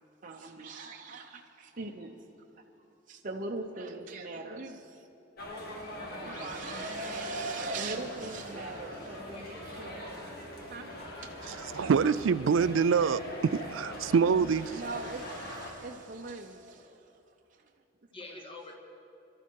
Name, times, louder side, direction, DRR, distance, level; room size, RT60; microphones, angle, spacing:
voice 1, 0.2-2.2 3.1-5.1 6.0-10.2 10.7-10.9 14.7-17.2 17.5-17.6 18.2-18.4, right 3 dB, 40° right, 1 dB, 0.7 m, -40 dB
sound 1, 5.4-15.7, left 1 dB, 55° left, 2.3 m, -42 dB
voice 2, 10.9-12.1 18.1-18.8, left 2 dB, 30° left, 1 dB, 1.7 m, -48 dB
voice 3, 11.5-14.8, right 6 dB, 75° right, 17 dB, 0.4 m, -26 dB
22.0 x 13.0 x 4.6 m, 2.9 s
head